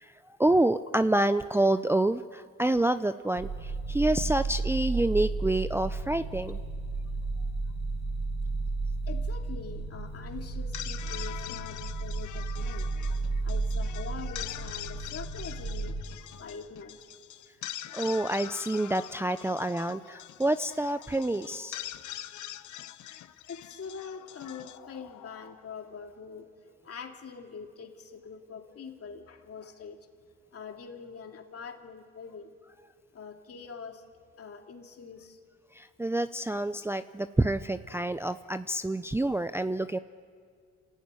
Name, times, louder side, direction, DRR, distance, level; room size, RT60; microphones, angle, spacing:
voice 1, 0.4-6.6 17.9-21.8 35.8-40.0, right 1 dB, 10° right, 10 dB, 0.5 m, -27 dB
sound 1, 3.4-16.0, right 3 dB, 65° right, 2.0 m, -33 dB
voice 2, 9.0-12.9 13.4-16.0 16.4-17.0 18.4-18.5 23.5-26.5 26.8-30.1 30.5-32.5 33.1-34.0 34.4-35.4, left 6 dB, 50° left, 3 dB, 2.6 m, -44 dB
sound 2, 10.6-25.8, left 13 dB, 75° left, 0.9 m, -43 dB
27.5 x 15.5 x 9.7 m, 2.1 s
cardioid pair, 90°, 30 cm